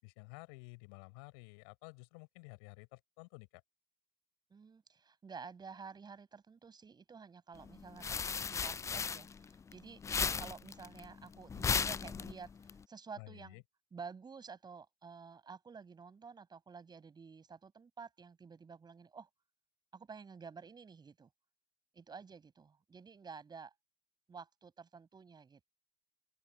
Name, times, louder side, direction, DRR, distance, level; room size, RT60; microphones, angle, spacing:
voice 1, 0.0-3.6 13.2-13.6, left 34 dB, 65° left, 6.4 m, -53 dB
voice 2, 4.5-13.6 13.9-19.3 19.9-21.3 21.9-23.7 24.3-25.7, right 5 dB, 30° right, 7.5 m, -51 dB
sound 1, 7.6-9.7 10.0-12.7, left 6 dB, 20° left, 0.4 m, -35 dB
open air
figure-of-eight pair, 55°, 14 cm